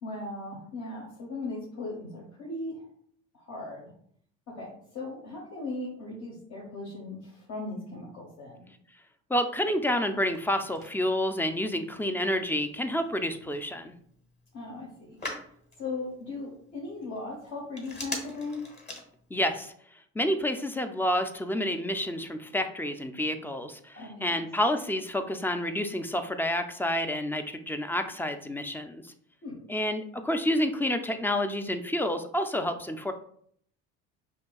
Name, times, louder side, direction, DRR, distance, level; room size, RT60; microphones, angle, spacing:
voice 1, 0.0-2.9 3.3-3.9 4.5-8.6 14.5-15.2 15.8-18.7 23.9-24.4 29.4-29.6, left 2 dB, 60° left, -3 dB, 1.3 m, -38 dB
voice 2, 9.3-13.9 19.3-19.7 20.2-29.0 29.7-33.1, left 1 dB, 5° left, 8 dB, 0.3 m, -29 dB
Telephone, 10.1-19.6, left 2 dB, 35° left, 1.3 m, -45 dB
5.4 x 2.8 x 2.3 m, 0.64 s
supercardioid pair, 85°, 31 cm